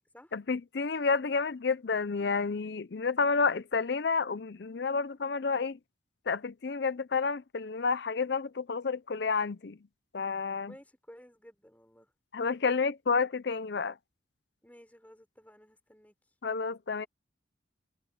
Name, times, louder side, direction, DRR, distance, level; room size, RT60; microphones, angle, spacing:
voice 1, 0.3-5.8 6.3-9.8 10.1-10.7 12.3-14.0 16.4-17.1, left 4 dB, 55° left, 0.5 m, -30 dB
voice 2, 10.7-12.1 14.6-16.1, equal, 10° left, 4.2 m, -55 dB
head